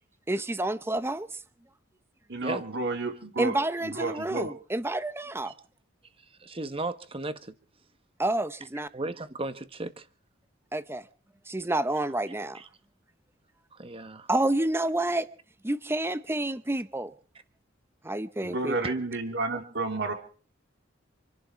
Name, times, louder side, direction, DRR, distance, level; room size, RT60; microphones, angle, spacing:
voice 1, 0.3-1.3 3.4-5.5 8.2-8.9 10.7-11.0 11.5-12.6 14.3-15.3 15.6-17.1 18.0-18.8, right 1 dB, 10° right, 0.8 m, -29 dB
voice 2, 2.3-4.5 18.4-20.1, right 3 dB, 60° right, 2.9 m, -31 dB
voice 3, 6.4-7.5 8.9-10.1 12.5-12.6 13.7-14.3 18.8-18.9, right 2 dB, 30° right, 1.4 m, -35 dB
27.0 x 11.0 x 4.6 m
head